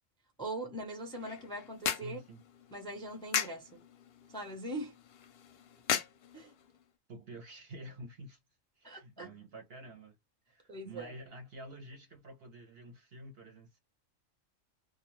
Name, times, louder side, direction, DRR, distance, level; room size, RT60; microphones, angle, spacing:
voice 1, 0.4-2.2 2.7-3.8 4.3-4.9 6.3-6.5 8.8-9.3 10.7-11.1, right 1 dB, 5° left, 0.6 m, -41 dB
sound 1, 1.0-6.9, left 8 dB, 60° left, 0.7 m, -39 dB
voice 2, 2.0-2.4 7.1-8.4 8.8-10.2 10.5-13.8, right 1 dB, 55° right, 0.8 m, -49 dB
2.3 x 2.2 x 3.0 m
omnidirectional pair, 1.3 m